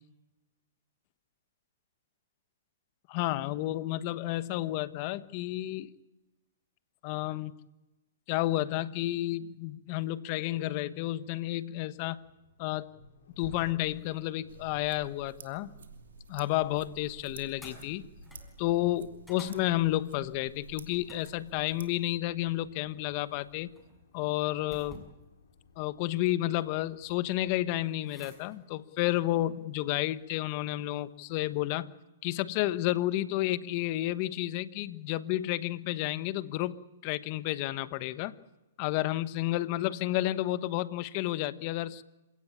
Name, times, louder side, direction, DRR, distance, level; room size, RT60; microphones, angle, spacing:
voice 1, 3.1-5.9 7.0-7.5 8.3-12.2 12.6-12.9 13.4-15.7 16.3-18.0 18.6-23.7 24.1-25.0 25.8-31.9 32.2-38.4 38.8-42.0, left 15 dB, 40° left, 15 dB, 1.2 m, -31 dB
Accelerating revving vroom, 11.9-27.7, left 4 dB, 75° left, 4.9 m, -57 dB
sound 1, 13.9-15.6 15.8-31.7, left 1 dB, 5° left, 6.3 m, -57 dB
sound 2, 14.5-21.8, right 7 dB, 80° right, 2.6 m, -52 dB
27.5 x 17.0 x 8.8 m, 1.1 s
hypercardioid pair, 135°, 0 cm